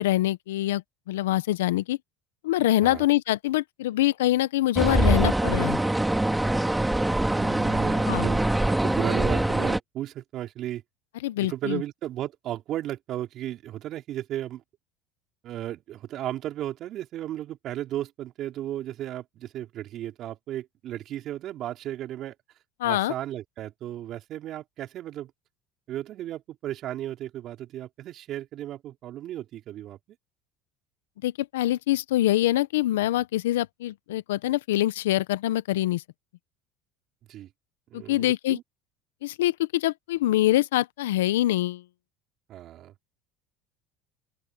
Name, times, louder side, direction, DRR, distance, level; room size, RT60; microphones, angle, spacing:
voice 1, 0.0-2.0 2.4-5.8 8.1-8.3 11.2-11.8 22.8-23.1 31.2-36.0 37.9-38.6 39.2-41.8, left 15 dB, 85° left, 0.9 m, -24 dB
sound 1, 4.8-9.8, right 1 dB, 10° right, 2.3 m, -23 dB
voice 2, 7.3-10.8 11.4-14.6 15.4-22.4 22.8-25.3 25.9-30.0 37.3-37.5 37.9-38.6 42.5-42.9, right 12 dB, 55° right, 4.0 m, -35 dB
open air
hypercardioid pair, 85°, 0 cm